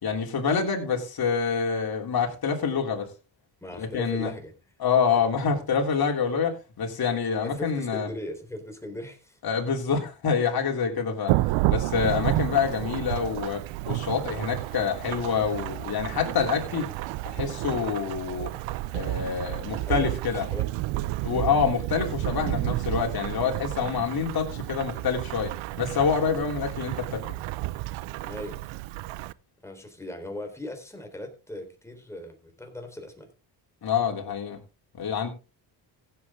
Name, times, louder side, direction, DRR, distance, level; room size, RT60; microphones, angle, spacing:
voice 1, 0.0-3.1 3.8-4.3 4.8-8.1 9.4-11.4 11.7-16.9 17.2-18.5 18.9-20.5 21.2-25.5 25.8-27.2 33.8-34.6 35.0-35.3, left 6 dB, 50° left, 3.4 m, -26 dB
voice 2, 3.6-4.5 5.2-5.3 7.4-9.4 19.9-20.7 28.2-28.6 29.6-33.3, left 1 dB, 5° left, 3.9 m, -38 dB
Thunderstorm / Rain, 11.3-29.3, right 18 dB, 90° right, 0.6 m, -31 dB
15.5 x 8.3 x 3.7 m
cardioid pair, 100°, 45 cm